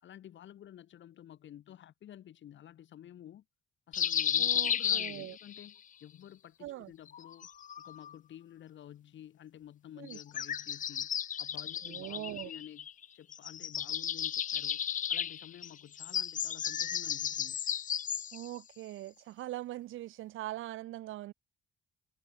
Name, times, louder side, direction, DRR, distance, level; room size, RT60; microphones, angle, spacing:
voice 1, 0.0-3.4 3.9-7.5 7.8-11.1 11.4-12.9 13.1-17.6, left 11 dB, 70° left, 3.3 m, -51 dB
sound 1, 3.9-5.7 7.1-8.1 10.1-13.0 13.3-18.5, left 9 dB, 40° left, 0.5 m, -34 dB
voice 2, 4.4-5.4 6.6-6.9 10.0-10.2 11.8-12.5 18.3-21.3, right 15 dB, 85° right, 1.2 m, -42 dB
cardioid pair, 90°, 20 cm